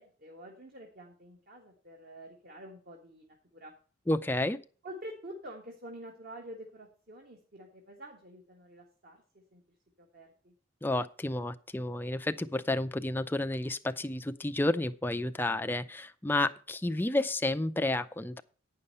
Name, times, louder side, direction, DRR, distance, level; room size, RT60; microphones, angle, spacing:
voice 1, 0.0-3.7 4.8-9.6 10.0-10.5, right 1 dB, 45° right, 1 dB, 1.7 m, -48 dB
voice 2, 4.1-4.6 10.8-18.4, left 2 dB, 10° left, 9 dB, 0.4 m, -31 dB
9.6 x 5.5 x 6.6 m, 0.40 s
head